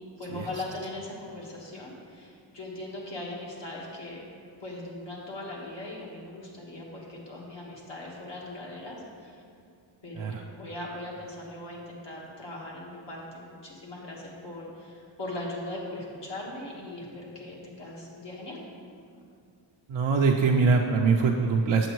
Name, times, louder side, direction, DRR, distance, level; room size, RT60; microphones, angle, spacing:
voice 1, 0.2-4.2 4.6-9.4 10.0-19.2, left 1 dB, 60° left, -4 dB, 1.5 m, -40 dB
voice 2, 19.9-21.9, right 4 dB, 70° right, 0 dB, 0.5 m, -23 dB
7.8 x 7.1 x 3.1 m, 2.3 s
wide cardioid pair, 105°, 48 cm